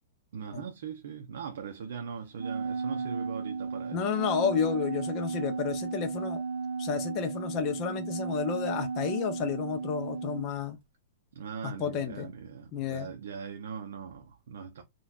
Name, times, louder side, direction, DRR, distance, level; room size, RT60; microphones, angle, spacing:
voice 1, 0.3-4.1 11.3-14.8, right 6 dB, 65° right, 0.6 m, -40 dB
Wind instrument woodwind instrument, 2.3-10.5, right 5 dB, 45° right, 1.2 m, -34 dB
voice 2, 3.9-6.4 6.8-10.8 11.6-12.3 12.7-13.1, left 7 dB, 20° left, 0.4 m, -31 dB
4.0 x 2.2 x 2.4 m
hypercardioid pair, 175°, 0 cm